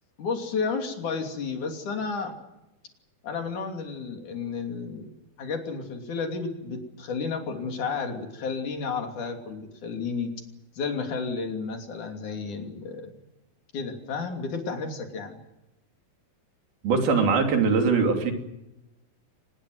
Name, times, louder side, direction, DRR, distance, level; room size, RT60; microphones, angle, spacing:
voice 1, 0.2-2.3 3.2-10.3 10.8-13.1 13.7-15.4, left 5 dB, 55° left, 4 dB, 4.3 m, -32 dB
voice 2, 16.8-18.3, right 4 dB, 90° right, 4 dB, 4.9 m, -21 dB
24.5 x 20.5 x 7.9 m, 0.94 s
omnidirectional pair, 4.2 m